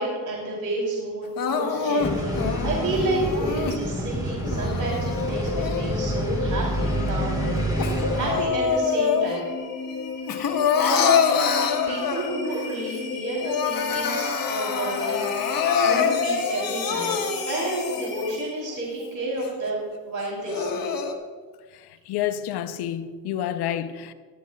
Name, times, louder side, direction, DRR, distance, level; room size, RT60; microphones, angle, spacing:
voice 1, 0.0-9.5 10.8-15.2 15.5-17.2 17.5-20.9, right 2 dB, 55° right, 3.7 m, -30 dB
Crying sobbing, 1.4-3.8 4.4-6.2 6.6-9.6 9.9-12.5 13.0-13.1 13.3-18.2 18.7-18.8 19.4-19.5 20.2-21.1, left 6 dB, 60° left, 1.3 m, -26 dB
sound 1, 2.0-8.4, right 1 dB, 10° right, 4.0 m, -28 dB
sound 2, 4.8-18.7, left 5 dB, 40° left, 3.1 m, -35 dB
voice 2, 21.7-24.1, left 10 dB, 90° left, 0.8 m, -29 dB
19.0 x 12.0 x 2.4 m
cardioid pair, 70°, 38 cm